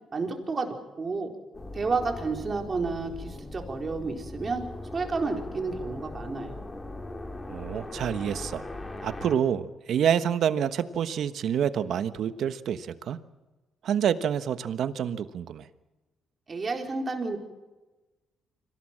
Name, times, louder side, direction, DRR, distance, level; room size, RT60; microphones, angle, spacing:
voice 1, 0.1-1.3 1.7-4.6 4.9-6.6 16.5-17.4, right 4 dB, 35° right, 3 dB, 4.3 m, -31 dB
sound 1, 1.5-9.4, left 2 dB, 20° left, 2.8 m, -39 dB
voice 2, 7.5-8.6 9.0-13.2 13.8-15.7, right 9 dB, 70° right, 12 dB, 1.2 m, -27 dB
25.5 x 17.5 x 7.5 m, 1.1 s
cardioid pair, 90°, 0 cm